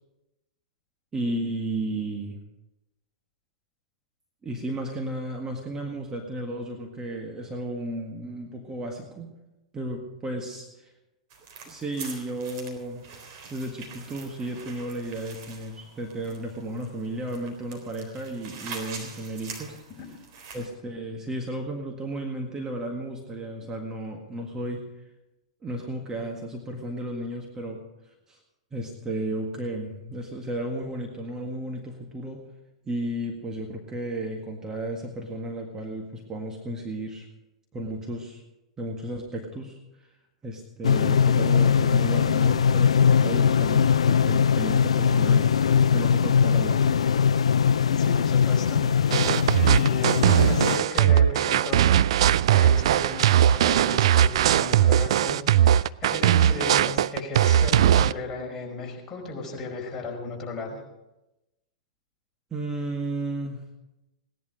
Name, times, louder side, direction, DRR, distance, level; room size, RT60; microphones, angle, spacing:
voice 1, 1.1-2.4 4.4-9.3 9.7-10.9 11.6-13.0 13.5-19.8 20.5-24.8 25.6-27.8 28.3-28.4 28.7-32.5 32.8-37.3 37.7-38.4 38.8-39.8 40.4-45.6 45.9-46.8 62.5-63.7, right 1 dB, 20° right, 1 dB, 1.8 m, -33 dB
sound 1, 11.3-20.7, right 5 dB, 45° right, 3.9 m, -44 dB
sound 2, 40.8-50.8, left 7 dB, 75° left, 0.5 m, -21 dB
voice 2, 47.8-51.9 52.5-60.8, left 2 dB, 20° left, -2 dB, 4.8 m, -35 dB
sound 3, 49.1-58.1, right 10 dB, 65° right, 0.4 m, -20 dB
17.5 x 11.0 x 5.1 m, 0.97 s
hypercardioid pair, 105°, 3 cm